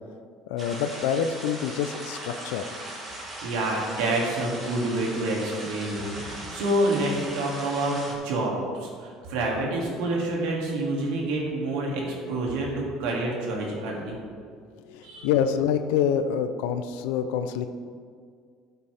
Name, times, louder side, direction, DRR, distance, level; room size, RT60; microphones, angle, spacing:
voice 1, 0.5-2.7 14.7-17.7, left 8 dB, 90° left, 9 dB, 0.6 m, -26 dB
sound 1, 0.6-8.1, right 1 dB, 30° right, 3.0 m, -39 dB
voice 2, 3.4-14.2 15.0-15.3, right 1 dB, 80° right, -2 dB, 2.7 m, -28 dB
13.5 x 8.1 x 3.6 m, 2.1 s
cardioid pair, 125°, 0 cm